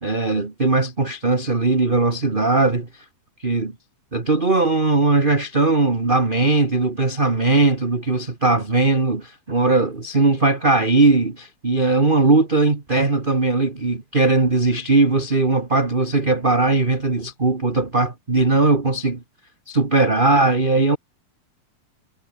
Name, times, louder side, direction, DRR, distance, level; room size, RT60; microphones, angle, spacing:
voice 1, 0.0-3.0 3.4-3.7 4.1-19.2 19.7-21.0, right 3 dB, 20° right, 1.6 m, -19 dB
omnidirectional pair, 4.2 m